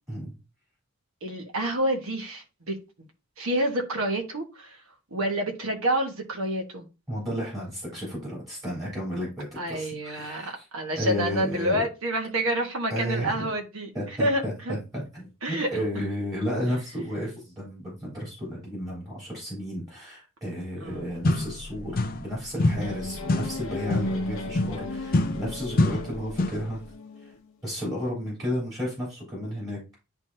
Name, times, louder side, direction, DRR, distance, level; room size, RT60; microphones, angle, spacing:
voice 1, 1.2-2.8 3.4-4.8 5.1-6.9 9.6-13.9 14.2-14.7 15.4-15.7 15.9-16.0 20.8-21.0, right 1 dB, 70° right, 1.4 m, -28 dB
voice 2, 7.1-10.7 10.9-11.8 12.9-13.5 13.9-26.8 27.2-27.3 27.6-29.8, equal, 20° right, 3.5 m, -33 dB
sound 1, 20.9-21.0 21.2-22.3 22.6-26.7, left 2 dB, 45° left, 0.6 m, -27 dB
sound 2, 22.8-27.4, left 2 dB, 75° left, 1.0 m, -36 dB
10.5 x 3.6 x 2.8 m
head